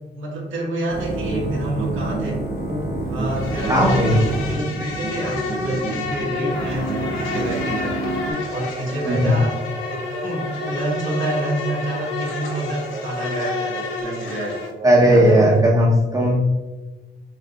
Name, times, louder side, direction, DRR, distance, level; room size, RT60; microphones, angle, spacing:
voice 1, 0.1-2.4 3.1-8.0 8.5-9.6 9.9-14.6 15.0-15.7, right 1 dB, 75° right, -3 dB, 1.2 m, -28 dB
sound 1, 0.9-4.6 6.5-8.3, right 2 dB, 55° left, 1.0 m, -30 dB
sound 2, 1.0-15.8, right 2 dB, 35° right, 1.1 m, -32 dB
Insect, 3.3-14.7, left 3 dB, 85° left, 0.7 m, -30 dB
voice 2, 3.7-4.2 9.1-9.4 14.8-16.4, equal, 15° right, -4 dB, 0.7 m, -16 dB
5.0 x 2.8 x 2.3 m, 1.2 s
cardioid pair, 90°, 20 cm